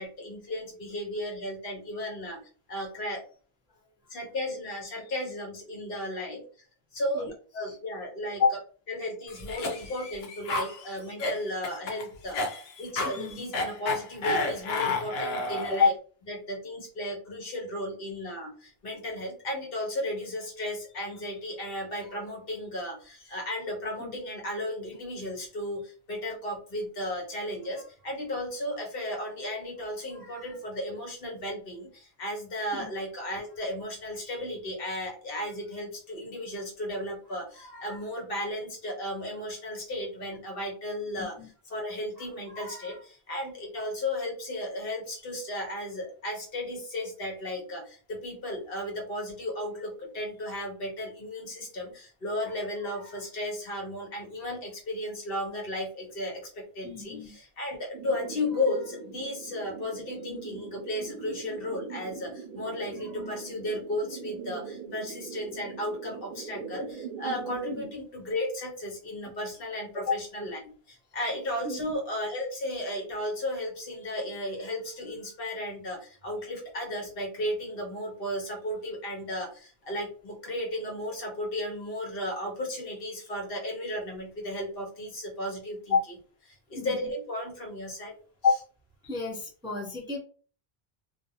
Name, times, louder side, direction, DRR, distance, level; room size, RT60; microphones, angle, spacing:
voice 1, 0.0-2.4 2.7-3.2 4.1-6.7 6.9-7.3 7.5-8.4 8.9-12.4 12.8-15.9 16.3-41.4 41.7-70.6 70.9-86.0 86.7-88.1, left 1 dB, 65° left, 0 dB, 1.1 m, -34 dB
Cough, 9.3-15.9, left 3 dB, 85° left, 0.9 m, -31 dB
voice 2, 41.2-41.5 56.8-57.3 67.7-67.8 70.1-70.2 71.6-71.9 85.9-86.0 86.8-86.9 88.4-88.6 89.0-90.2, left 5 dB, 5° right, -4 dB, 0.5 m, -27 dB
sound 1, 57.9-67.9, right 6 dB, 60° right, 0.7 m, -42 dB
2.5 x 2.1 x 2.7 m, 0.40 s
omnidirectional pair, 1.0 m